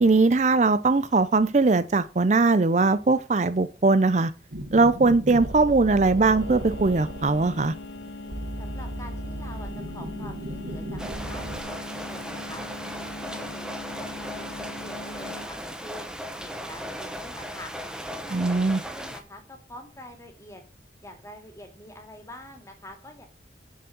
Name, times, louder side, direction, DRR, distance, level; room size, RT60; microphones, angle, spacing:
voice 1, 0.0-4.3 4.7-7.7 18.3-18.8, right 3 dB, 40° right, 0.5 m, -20 dB
sound 1, 4.5-11.6, right 1 dB, 75° right, 1.7 m, -36 dB
sound 2, 6.4-15.5, left 2 dB, 90° left, 1.0 m, -41 dB
voice 2, 8.6-12.6 13.0-16.1 16.4-17.7 18.1-20.6 21.0-23.3, left 1 dB, 15° left, 2.4 m, -46 dB
sound 3, 11.0-19.2, equal, 5° right, 1.1 m, -37 dB
7.4 x 6.9 x 7.6 m
head